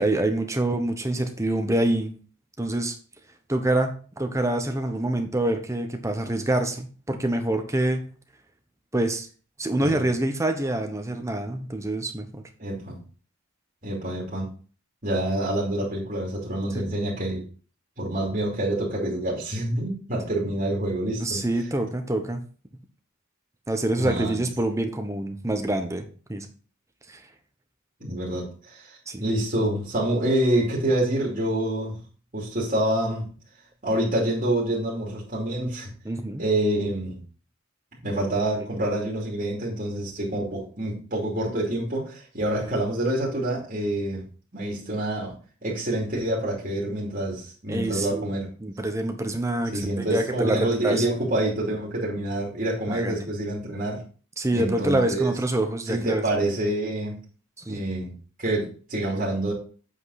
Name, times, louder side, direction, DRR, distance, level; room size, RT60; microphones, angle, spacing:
voice 1, 0.0-2.1 2.6-2.9 3.5-8.0 8.9-9.3 9.6-12.4 16.7-16.8 21.2-22.4 23.7-26.5 27.1-27.2 29.1-29.2 36.0-36.4 47.7-48.3 48.6-51.1 52.9-53.3 54.4-56.2 57.6-57.8, right 1 dB, 15° right, 6 dB, 1.0 m, -26 dB
voice 2, 12.6-13.0 13.8-14.5 15.0-17.4 18.0-21.4 24.0-24.4 28.0-32.0 32.3-33.3 33.8-35.9 36.4-37.2 38.0-44.2 44.5-45.3 45.6-48.5 49.7-54.0 54.5-55.3 55.9-57.2 57.7-58.1 58.4-59.5, right 1 dB, 40° right, -4 dB, 2.7 m, -27 dB
8.1 x 5.3 x 4.1 m, 0.39 s
head